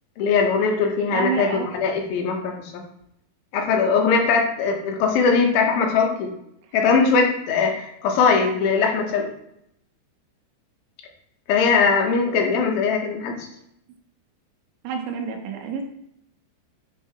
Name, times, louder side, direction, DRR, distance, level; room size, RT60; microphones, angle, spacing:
voice 1, 0.2-2.5 3.5-6.3 6.7-9.3 11.5-13.4, left 5 dB, 85° left, 2 dB, 2.1 m, -20 dB
voice 2, 1.1-1.7 6.9-7.0 14.8-15.8, right 6 dB, 80° right, 3 dB, 3.0 m, -28 dB
9.1 x 3.6 x 2.8 m, 0.76 s
omnidirectional pair, 5.5 m